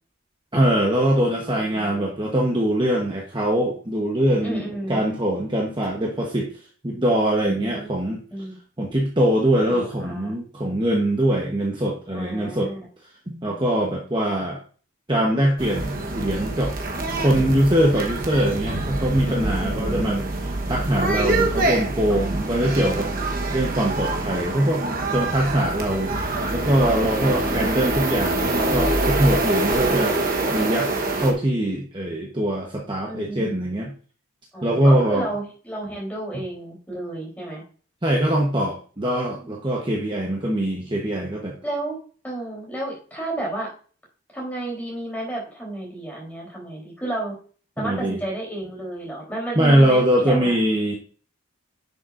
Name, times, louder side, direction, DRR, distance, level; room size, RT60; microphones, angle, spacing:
voice 1, 0.5-4.6 4.9-6.5 6.8-8.2 8.8-12.7 13.3-14.6 15.1-16.7 17.2-20.2 20.7-23.1 23.5-24.8 25.1-30.2 30.5-30.9 31.1-33.9 34.6-35.3 38.0-41.6 47.8-48.2 49.5-50.9, right 1 dB, 20° right, -2 dB, 1.1 m, -22 dB
voice 2, 1.3-2.1 4.4-5.0 7.4-7.9 8.3-8.6 9.7-10.3 12.1-12.9 19.3-20.3 22.1-23.3 27.0-27.7 33.0-33.6 34.5-37.6 39.4-39.5 41.6-42.0 42.2-43.7 44.3-47.4 47.8-51.0, right 1 dB, 5° left, -3 dB, 3.6 m, -32 dB
sound 1, 15.6-31.3, right 2 dB, 40° right, 1.1 m, -25 dB
10.0 x 6.9 x 2.6 m, 0.41 s
head